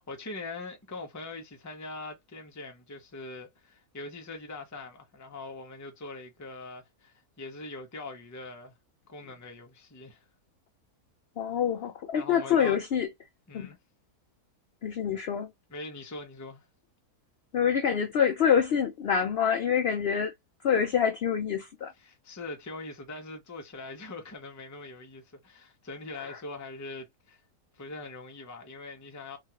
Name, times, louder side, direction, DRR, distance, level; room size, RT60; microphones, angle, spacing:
voice 1, 0.0-8.8 9.1-10.3 12.1-12.8 13.5-13.8 15.7-16.7 22.0-27.4 27.7-29.4, left 3 dB, 25° left, 0.4 m, -42 dB
voice 2, 11.4-13.1 13.5-13.7 14.8-15.5 17.5-20.3 20.6-21.9 26.1-26.4, left 8 dB, 75° left, 0.5 m, -26 dB
3.0 x 2.4 x 2.8 m
omnidirectional pair, 1.6 m